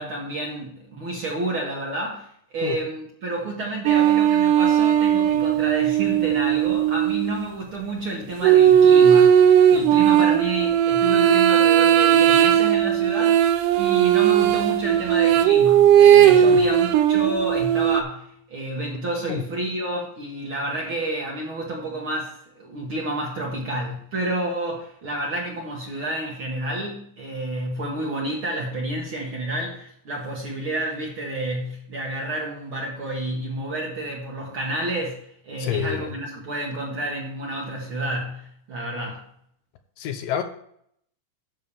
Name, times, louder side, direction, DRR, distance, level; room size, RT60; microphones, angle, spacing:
voice 1, 0.0-39.2, right 1 dB, 50° right, -2 dB, 1.8 m, -30 dB
sound 1, 3.9-7.4 8.4-18.0, right 9 dB, 80° right, 1.9 m, -17 dB
voice 2, 35.6-36.1 40.0-40.4, left 10 dB, 75° left, 7 dB, 2.3 m, -28 dB
10.5 x 3.8 x 7.0 m, 0.68 s
omnidirectional pair, 4.2 m